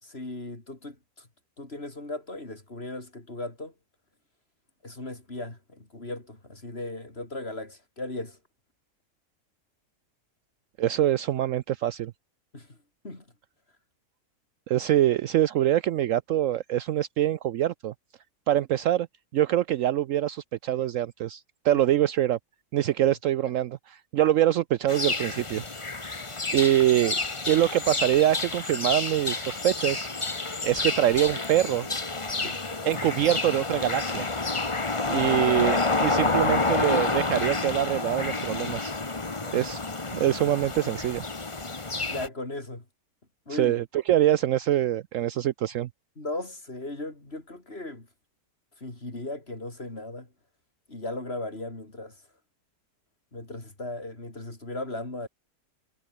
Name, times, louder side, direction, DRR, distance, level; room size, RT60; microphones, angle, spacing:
voice 1, 0.0-1.3 1.6-3.7 4.8-8.4 12.5-12.8 13.0-13.2 21.7-21.8 32.4-32.6 39.4-39.6 42.0-42.8 43.5-43.8 46.2-48.1 48.8-50.3 50.9-52.1 53.3-55.3, left 2 dB, 40° left, 4.8 m, -37 dB
voice 2, 10.8-12.1 14.7-17.9 18.5-19.1 19.3-22.4 22.7-25.6 25.9-26.0 26.5-27.2 27.5-30.1 30.6-31.9 32.9-34.3 35.1-38.9 39.5-39.8 40.1-41.2 43.5-45.9, right 12 dB, 70° right, 0.9 m, -24 dB
sound 1, 24.9-42.3, left 3 dB, 20° left, 1.3 m, -29 dB
omnidirectional pair, 1.6 m